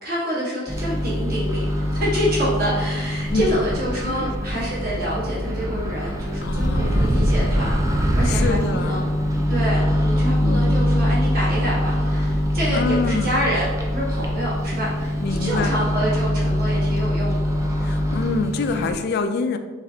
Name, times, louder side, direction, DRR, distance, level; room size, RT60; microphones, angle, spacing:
voice 1, 0.0-7.7 8.2-9.1 9.5-15.1 15.4-17.4, equal, 50° right, -6 dB, 1.3 m, -27 dB
Microwave oven, 0.7-18.9, equal, 15° right, 0.5 m, -23 dB
voice 2, 3.3-3.6 4.0-4.3 6.4-7.3 8.2-9.1 10.4-10.9 12.7-13.4 15.2-15.8 17.8-19.6, left 4 dB, 55° left, 8 dB, 0.3 m, -26 dB
5.0 x 3.3 x 2.8 m, 1.3 s
head